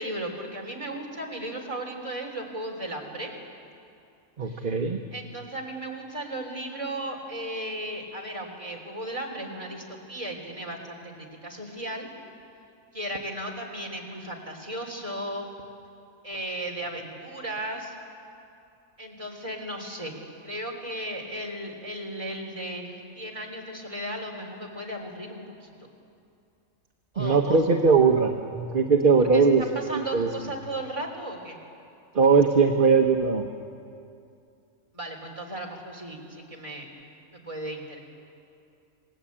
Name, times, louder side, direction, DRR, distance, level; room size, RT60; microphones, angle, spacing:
voice 1, 0.0-3.3 4.4-4.7 5.1-12.1 12.9-15.5 16.2-17.9 19.0-20.1 20.4-25.7 27.1-27.6 29.2-31.6 34.9-36.9 37.3-38.0, right 1 dB, 25° right, 0 dB, 3.6 m, -35 dB
voice 2, 4.4-5.0 27.2-30.3 32.1-33.5, right 5 dB, 45° right, 4 dB, 1.2 m, -20 dB
28.0 x 19.0 x 8.7 m, 2.6 s
omnidirectional pair, 1.3 m